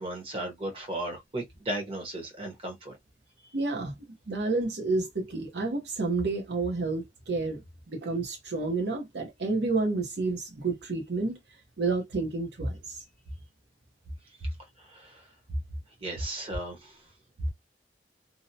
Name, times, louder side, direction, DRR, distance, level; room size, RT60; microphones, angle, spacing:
voice 1, 0.0-2.9 14.8-15.2 16.0-17.0, right 1 dB, 30° right, 0.8 m, -36 dB
voice 2, 3.5-4.0 4.3-7.6 7.9-11.4 11.8-13.0, right 3 dB, 65° right, 0.7 m, -30 dB
2.6 x 2.0 x 2.6 m
head